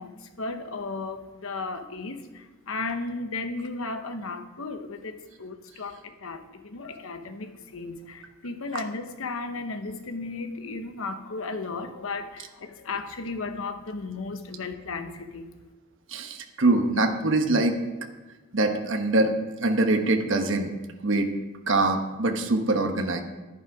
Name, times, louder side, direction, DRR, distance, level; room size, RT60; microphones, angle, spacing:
voice 1, 0.0-15.5, left 3 dB, 70° left, 7 dB, 1.0 m, -35 dB
voice 2, 16.1-17.8 18.5-19.3 19.6-20.7 21.0-21.3 21.7-23.2, right 2 dB, 60° right, 5 dB, 1.2 m, -23 dB
10.5 x 10.5 x 4.9 m, 1.2 s
head